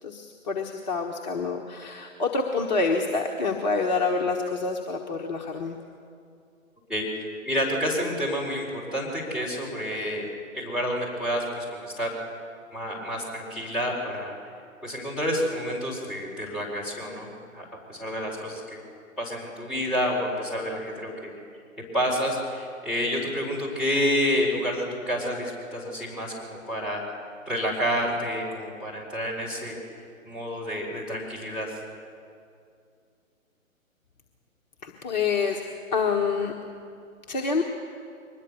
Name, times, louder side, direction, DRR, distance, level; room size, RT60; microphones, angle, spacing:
voice 1, 0.0-5.8 34.8-35.6 35.9-36.5 37.3-37.6, left 4 dB, 30° left, 0 dB, 1.4 m, -27 dB
voice 2, 6.9-10.3 10.5-12.1 12.7-14.4 14.8-18.8 19.2-21.3 21.9-27.0 27.4-29.8 30.2-31.8, equal, ahead, -7 dB, 4.6 m, -29 dB
23.5 x 20.5 x 6.9 m, 2.4 s
figure-of-eight pair, 135°, 41 cm